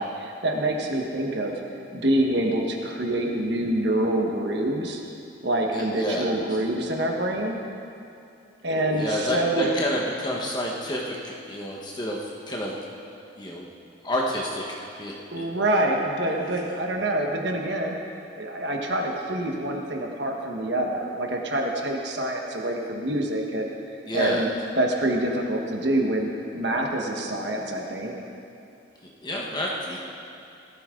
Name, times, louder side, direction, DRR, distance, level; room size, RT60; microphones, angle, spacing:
voice 1, 0.0-1.6 1.9-5.0 5.4-7.6 8.6-9.8 15.3-18.0 18.4-24.5 24.8-26.3 26.5-28.1, right 1 dB, 60° right, 1 dB, 1.4 m, -26 dB
voice 2, 5.7-6.3 8.9-12.7 13.4-13.7 14.0-14.7 15.0-15.1 24.1-24.4 29.0-30.0, left 1 dB, 20° left, -2 dB, 1.2 m, -29 dB
19.0 x 13.5 x 3.8 m, 2.6 s
head